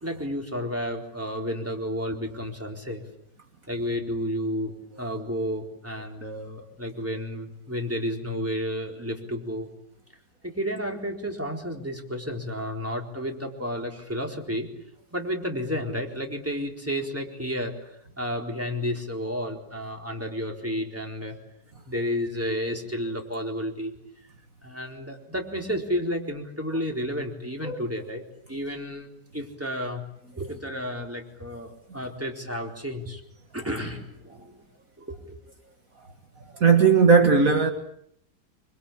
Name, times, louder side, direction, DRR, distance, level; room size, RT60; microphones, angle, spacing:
voice 1, 0.0-3.0 3.7-9.7 10.4-14.7 15.1-21.4 21.9-23.9 24.6-30.0 30.4-33.2 33.5-34.6 35.0-35.4, equal, 10° right, 4.2 m, -31 dB
voice 2, 36.6-37.7, right 5 dB, 55° right, 2.3 m, -17 dB
26.5 x 25.5 x 8.7 m
omnidirectional pair, 1.7 m